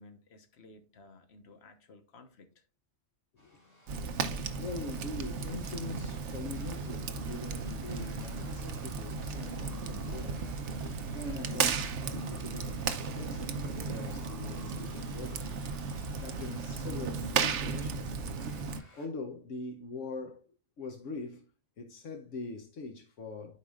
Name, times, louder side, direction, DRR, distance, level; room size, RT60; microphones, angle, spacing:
voice 1, 0.0-2.6, left 2 dB, 60° left, 1.4 m, -56 dB
sound 1, 3.4-19.1, equal, 30° left, 3.1 m, -56 dB
Fire, 3.9-18.8, right 5 dB, 70° right, 1.0 m, -35 dB
voice 2, 4.5-10.6 11.1-15.5 16.2-18.1 19.0-20.5 20.8-21.5 21.8-23.6, left 3 dB, 75° left, 1.2 m, -42 dB
12.0 x 4.8 x 2.4 m
omnidirectional pair, 1.3 m